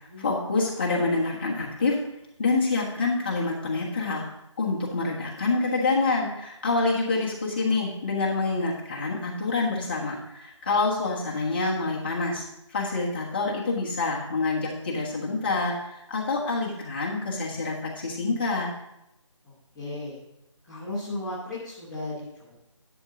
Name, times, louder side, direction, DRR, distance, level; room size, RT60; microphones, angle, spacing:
voice 1, 0.2-2.0 2.4-4.3 4.6-18.7, left 3 dB, 20° left, -3 dB, 1.3 m, -27 dB
voice 2, 19.4-20.2 20.6-22.5, left 2 dB, ahead, -16 dB, 0.7 m, -35 dB
11.0 x 6.5 x 3.8 m, 0.86 s
figure-of-eight pair, 170°, 16 cm